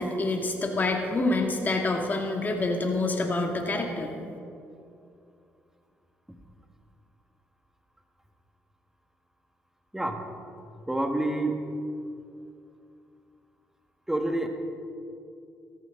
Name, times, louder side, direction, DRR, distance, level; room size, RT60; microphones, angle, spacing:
voice 1, 0.0-4.1, left 2 dB, 35° left, 1 dB, 2.1 m, -27 dB
voice 2, 9.9-10.3 10.9-11.7 14.1-14.5, right 1 dB, 10° right, 4 dB, 1.6 m, -28 dB
14.5 x 13.5 x 3.8 m, 2.6 s
supercardioid pair, 75°, 5 cm